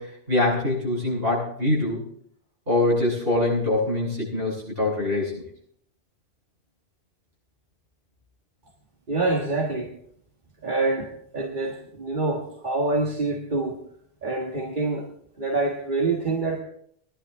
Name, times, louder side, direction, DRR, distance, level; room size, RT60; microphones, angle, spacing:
voice 1, 0.0-2.0 2.7-5.4, left 2 dB, 65° right, -5 dB, 8.4 m, -24 dB
voice 2, 9.1-9.9 10.6-13.8 14.2-15.1 15.4-16.6, right 2 dB, 50° right, -1 dB, 1.8 m, -26 dB
21.0 x 11.0 x 3.6 m, 0.66 s
omnidirectional pair, 1.0 m